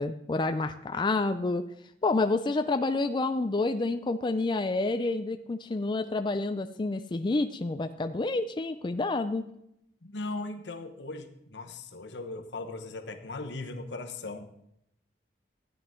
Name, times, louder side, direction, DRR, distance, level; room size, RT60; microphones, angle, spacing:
voice 1, 0.0-1.6 2.0-9.4, left 3 dB, 25° left, 8 dB, 0.4 m, -28 dB
voice 2, 10.0-14.5, left 2 dB, 80° left, 6 dB, 1.1 m, -38 dB
13.5 x 9.4 x 3.7 m, 0.78 s
head